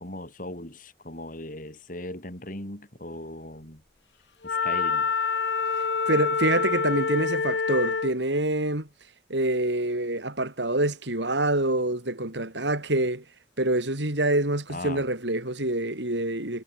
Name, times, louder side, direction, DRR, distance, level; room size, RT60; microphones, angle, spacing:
voice 1, 0.0-3.8 4.4-5.1 14.7-15.1, left 1 dB, 50° left, 5.8 m, -38 dB
Wind instrument woodwind instrument, 4.4-8.2, left 4 dB, 75° left, 1.1 m, -26 dB
voice 2, 6.1-8.9 9.3-13.2 13.6-16.6, right 1 dB, 85° right, 6.5 m, -26 dB
head